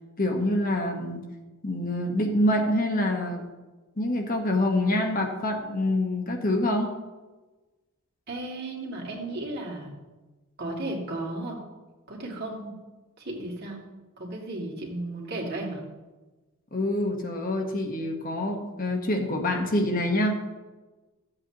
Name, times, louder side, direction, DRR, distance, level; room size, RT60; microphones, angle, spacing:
voice 1, 0.2-1.2 1.6-3.5 4.0-6.9 16.7-20.3, left 1 dB, 40° left, 2 dB, 1.2 m, -26 dB
voice 2, 8.3-10.0 10.6-11.6 12.1-12.7 13.2-13.8 14.2-15.9, right 2 dB, 45° right, -2 dB, 2.3 m, -34 dB
14.5 x 8.0 x 2.9 m, 1.2 s
head